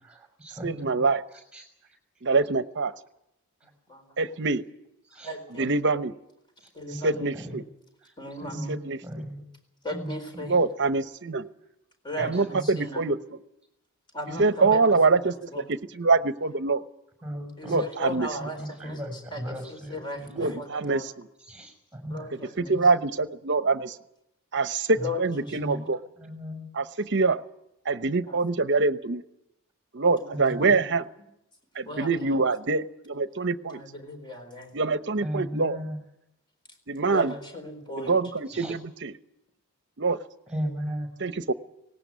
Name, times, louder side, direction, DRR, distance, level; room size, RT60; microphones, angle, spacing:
voice 1, 0.0-1.0 1.5-1.6 5.1-5.3 6.9-7.0 7.3-7.6 8.0-8.1 8.4-9.4 9.9-10.6 12.2-12.6 14.3-15.0 17.2-17.9 18.4-20.5 21.5-22.3 22.6-22.8 25.0-25.1 25.4-25.9 26.2-26.7 30.3-30.7 35.2-36.0 38.5-38.7 40.5-41.1, equal, 5° right, 5 dB, 5.8 m, -36 dB
voice 2, 0.6-1.2 2.2-2.9 4.2-4.6 5.6-6.1 7.0-7.6 8.7-9.0 10.5-11.5 12.2-13.4 14.4-16.8 17.6-18.3 20.4-21.3 22.6-24.0 24.5-26.0 26.7-27.4 27.8-29.2 29.9-31.0 31.7-33.8 34.7-35.8 36.9-37.3 38.0-39.1 40.0-40.2 41.2-41.5, right 3 dB, 55° right, 12 dB, 1.0 m, -25 dB
voice 3, 5.2-5.7 6.7-7.3 8.2-8.8 9.8-10.6 12.0-13.0 14.1-14.8 15.1-15.7 17.6-21.1 22.1-22.8 24.9-25.8 28.3-28.4 30.1-30.8 31.8-32.4 33.7-34.7 37.1-38.2, left 1 dB, 20° left, 5 dB, 4.2 m, -37 dB
19.0 x 17.5 x 9.5 m, 0.84 s
head